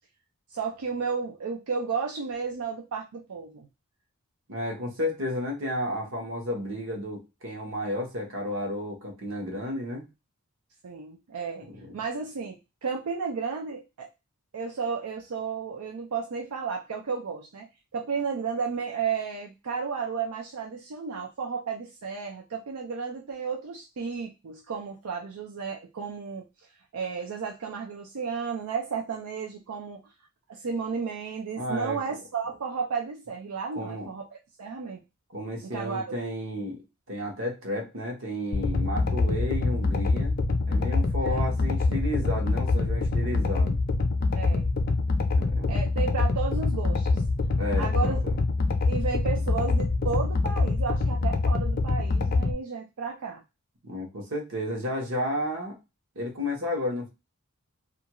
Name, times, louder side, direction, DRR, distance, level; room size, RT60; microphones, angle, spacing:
voice 1, 0.5-3.7 10.8-12.6 12.8-14.1 14.5-17.7 17.9-26.4 26.9-30.0 30.5-34.3 34.6-35.0 35.6-36.2 41.2-41.5 44.3-44.7 45.7-47.2 47.8-48.2 48.9-53.4, right 5 dB, 80° right, 1 dB, 0.5 m, -33 dB
voice 2, 4.5-10.0 31.6-32.0 33.8-34.1 35.3-36.8 37.1-43.8 45.3-45.7 47.6-48.2 53.8-55.8 56.2-57.1, left 1 dB, 60° right, 1 dB, 1.0 m, -32 dB
sound 1, 38.5-52.5, left 3 dB, 45° left, 0.5 m, -25 dB
2.5 x 2.3 x 2.9 m, 0.26 s
head